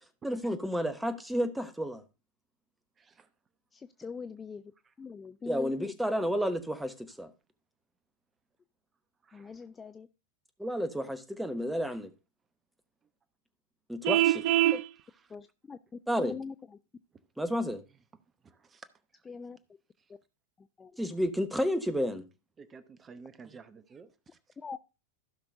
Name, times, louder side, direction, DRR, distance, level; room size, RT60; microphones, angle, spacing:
voice 1, 0.2-2.0 5.4-7.3 10.6-12.1 13.9-14.4 16.1-16.4 17.4-17.8 21.0-22.2, equal, 5° right, 1.1 m, -31 dB
voice 2, 3.7-4.6 5.0-5.9 9.3-10.1 14.7-14.8 15.3-15.8 16.2-16.5 19.3-19.6 20.8-20.9 24.6-24.8, left 5 dB, 15° left, 0.4 m, -42 dB
Vehicle horn car horn honking, 14.0-14.8, right 14 dB, 45° right, 0.5 m, -24 dB
voice 3, 18.4-18.8 22.6-24.1, right 5 dB, 20° right, 0.9 m, -52 dB
15.5 x 6.0 x 2.6 m
figure-of-eight pair, 90°, 0 cm